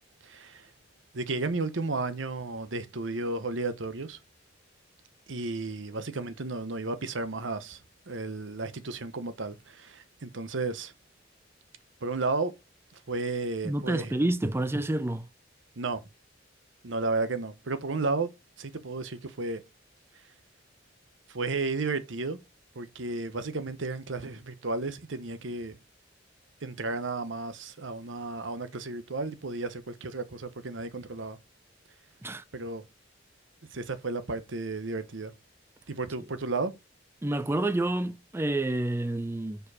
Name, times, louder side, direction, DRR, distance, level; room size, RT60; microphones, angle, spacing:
voice 1, 0.2-0.7 1.1-4.2 5.3-7.8 8.1-10.9 12.0-12.5 13.1-14.1 15.8-16.0 16.8-18.3 18.6-19.6 21.3-22.4 22.8-25.8 26.6-31.4 32.5-32.8 33.7-35.3 35.9-36.7, right 3 dB, 75° right, 0.9 m, -33 dB
voice 2, 13.6-15.3 32.2-32.4 37.2-39.6, right 1 dB, 15° right, 0.4 m, -28 dB
5.2 x 4.6 x 4.8 m
head